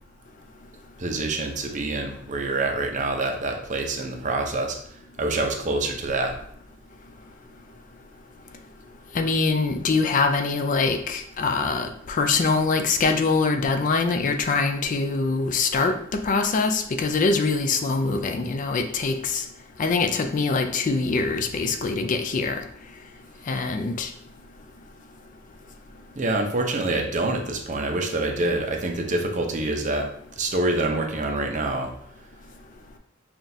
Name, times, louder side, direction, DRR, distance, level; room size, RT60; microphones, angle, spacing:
voice 1, 1.0-6.3 26.1-31.9, right 2 dB, 40° right, 3 dB, 0.6 m, -26 dB
voice 2, 9.1-15.9 16.2-19.4 19.8-22.6 23.5-24.1, left 4 dB, 40° left, 6 dB, 0.4 m, -23 dB
5.8 x 2.4 x 2.6 m, 0.65 s
head